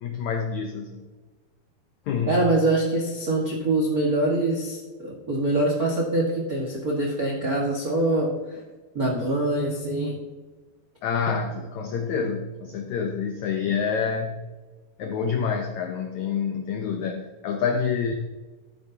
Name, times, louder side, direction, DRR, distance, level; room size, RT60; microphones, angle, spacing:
voice 1, 0.0-1.0 2.1-2.4 11.0-14.5 15.0-18.1, left 6 dB, 85° left, 4 dB, 1.6 m, -27 dB
voice 2, 2.3-8.6 8.9-10.2, right 2 dB, 55° right, -2 dB, 0.9 m, -24 dB
14.0 x 8.4 x 2.8 m, 1.3 s
omnidirectional pair, 4.4 m